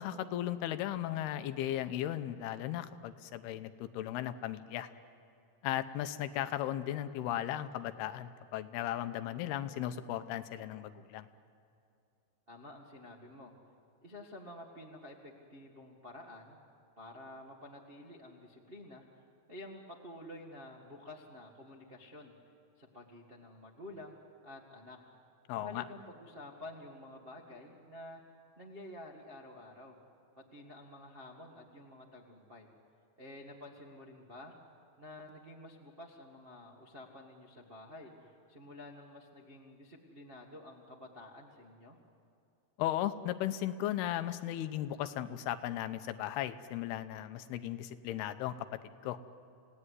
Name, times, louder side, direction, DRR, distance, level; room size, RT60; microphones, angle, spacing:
voice 1, 0.0-4.9 5.6-11.3 25.5-25.8 42.8-49.2, left 12 dB, 80° left, 11 dB, 2.7 m, -36 dB
voice 2, 12.5-13.5 14.0-16.6 17.0-22.3 22.8-24.2 24.4-25.0 25.5-28.2 28.6-30.0 30.4-32.7 33.2-34.5 35.0-42.0, left 1 dB, 50° right, -2 dB, 0.6 m, -50 dB
28.5 x 17.5 x 9.7 m, 2.5 s
omnidirectional pair, 4.7 m